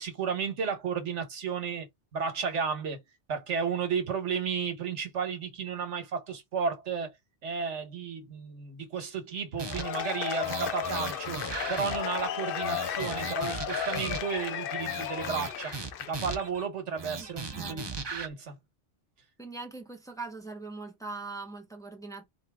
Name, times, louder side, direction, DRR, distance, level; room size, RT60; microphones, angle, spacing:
voice 1, 0.0-1.9 2.1-3.0 3.3-7.1 7.4-11.4 11.7-15.7 16.1-17.8 18.1-18.5, right 6 dB, 80° right, 1.5 m, -33 dB
Cheering / Applause / Crowd, 9.6-16.4, left 9 dB, 60° left, 0.6 m, -34 dB
sound 1, 9.6-10.1 10.4-12.3 12.6-14.4 14.8-16.6 17.0-18.3, right 4 dB, 30° right, 0.5 m, -38 dB
voice 2, 17.2-17.9 19.4-22.2, right 3 dB, 5° left, 1.0 m, -41 dB
4.5 x 2.8 x 3.5 m
omnidirectional pair, 1.2 m